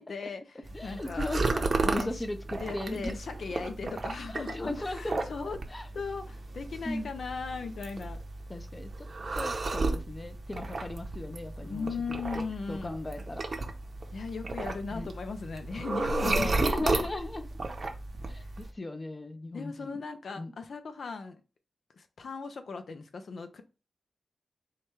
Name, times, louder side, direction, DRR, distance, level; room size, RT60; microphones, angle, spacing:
voice 1, 0.0-1.3 1.8-2.2 2.5-5.6 5.9-8.2 11.6-13.0 14.1-16.5 18.4-18.5 19.5-21.4 21.9-23.6, left 4 dB, 70° left, 8 dB, 0.5 m, -38 dB
sound 1, 0.6-18.7, right 3 dB, 50° right, 0.7 m, -34 dB
voice 2, 0.7-3.1 4.5-5.2 5.7-5.9 6.8-7.1 8.5-9.1 9.4-11.9 12.3-13.4 14.9-15.1 16.3-17.5 18.3-20.0 20.4-20.5, left 1 dB, 25° left, 8 dB, 0.6 m, -37 dB
4.7 x 2.3 x 4.4 m, 0.31 s
cardioid pair, 75°, 0 cm